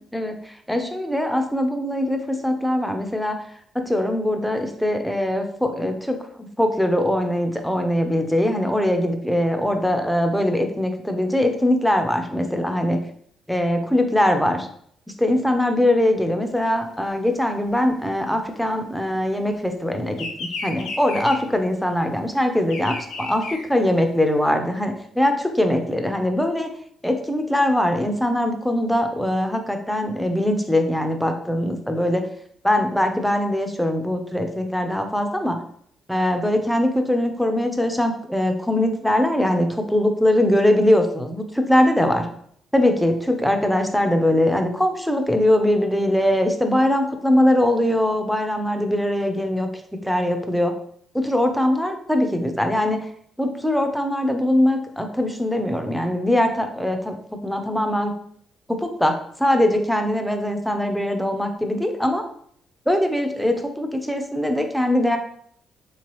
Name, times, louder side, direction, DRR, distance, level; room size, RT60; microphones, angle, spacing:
voice 1, 0.1-3.4 3.7-13.0 13.5-14.7 15.2-20.2 20.6-26.7 27.0-32.3 32.6-35.6 36.1-42.3 42.7-49.7 50.0-50.7 51.1-53.1 53.4-57.1 57.4-58.1 58.7-62.2 62.9-65.2, left 1 dB, ahead, 5 dB, 0.5 m, -21 dB
Bird vocalization bird call bird song, 16.5-19.4 19.7-24.4, left 3 dB, 90° left, 0.6 m, -34 dB
3.3 x 3.1 x 3.0 m, 0.64 s
cardioid pair, 90°, 0 cm